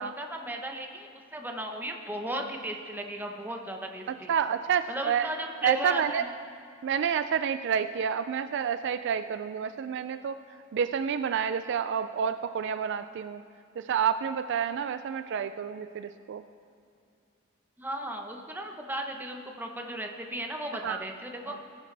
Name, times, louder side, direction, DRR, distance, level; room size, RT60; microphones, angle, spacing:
voice 1, 0.0-4.3 4.9-6.3 17.8-21.5, right 1 dB, 10° right, 2 dB, 0.9 m, -36 dB
voice 2, 4.1-5.3 5.6-6.2 6.8-10.4 10.7-13.4 13.8-16.4 20.8-21.0 21.5-21.6, right 7 dB, 60° right, 11 dB, 0.3 m, -29 dB
18.5 x 9.8 x 3.4 m, 2.5 s
head